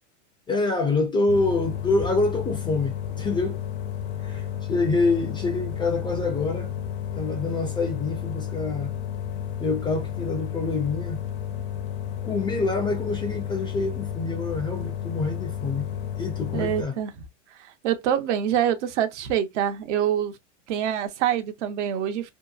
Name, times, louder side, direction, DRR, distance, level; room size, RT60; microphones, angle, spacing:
voice 1, 0.5-3.6 4.2-6.7 7.1-9.0 9.6-11.2 12.2-17.0, left 3 dB, 15° left, 0.3 m, -26 dB
sound 1, 1.3-16.8, left 9 dB, 60° left, 0.6 m, -32 dB
voice 2, 16.5-17.1 17.6-20.3 20.7-22.3, right 10 dB, 70° right, 0.7 m, -25 dB
2.9 x 2.0 x 2.3 m
hypercardioid pair, 110°, 36 cm